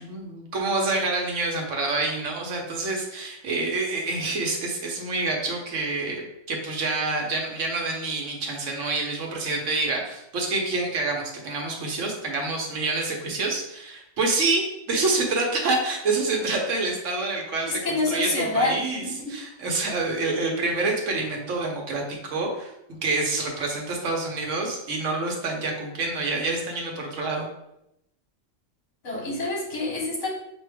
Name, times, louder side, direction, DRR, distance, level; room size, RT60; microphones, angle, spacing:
voice 1, 0.0-27.5, right 3 dB, 70° right, 1 dB, 1.2 m, -27 dB
voice 2, 17.7-19.3 29.0-30.3, left 2 dB, 65° left, -4 dB, 1.6 m, -27 dB
6.0 x 2.5 x 3.4 m, 0.82 s
omnidirectional pair, 1.4 m